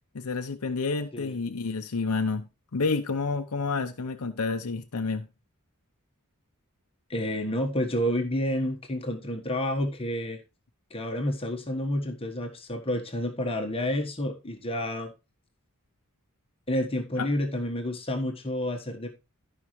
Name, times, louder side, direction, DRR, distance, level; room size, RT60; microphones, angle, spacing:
voice 1, 0.1-2.5 2.7-5.3 17.2-17.3, left 4 dB, 75° left, 0.7 m, -29 dB
voice 2, 7.1-10.4 10.9-15.1 16.7-19.1, left 1 dB, 25° left, 1.4 m, -29 dB
14.5 x 5.5 x 3.2 m
head